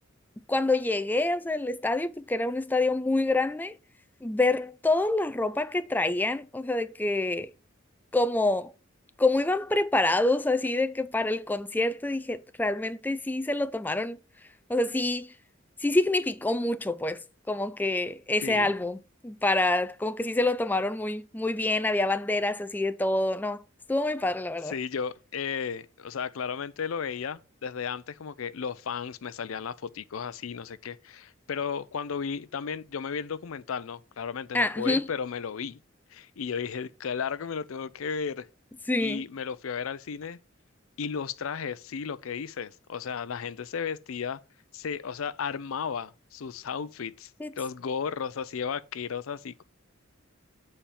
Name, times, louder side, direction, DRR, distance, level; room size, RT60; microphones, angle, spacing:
voice 1, 0.5-3.8 4.2-7.5 8.1-8.7 9.2-14.2 14.7-15.3 15.8-17.2 17.5-19.0 19.2-23.6 23.9-24.7 34.5-35.1 38.9-39.2 47.4-47.5, left 2 dB, 10° left, 0.3 m, -26 dB
voice 2, 18.4-18.7 24.6-35.8 36.1-38.5 39.0-40.4 41.0-44.4 44.7-47.3 47.6-49.6, left 6 dB, 80° left, 0.5 m, -34 dB
7.2 x 4.3 x 6.8 m
head